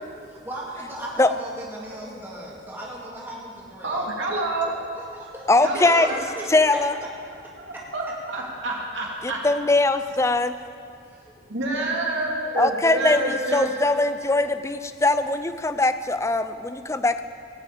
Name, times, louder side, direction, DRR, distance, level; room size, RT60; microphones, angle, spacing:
voice 1, 0.3-4.0 5.0-6.5 7.7-7.8 11.1-11.4 11.7-11.8, right 1 dB, 10° right, -5 dB, 2.1 m, -37 dB
voice 2, 3.8-4.7 5.6-6.1 6.9-7.0 7.3-9.4 11.5-13.7, right 2 dB, 80° right, -2 dB, 2.4 m, -28 dB
voice 3, 5.5-6.1 6.5-6.9 9.2-10.6 12.6-17.2, left 2 dB, 15° left, 11 dB, 0.4 m, -21 dB
18.0 x 6.1 x 8.6 m, 2.4 s
head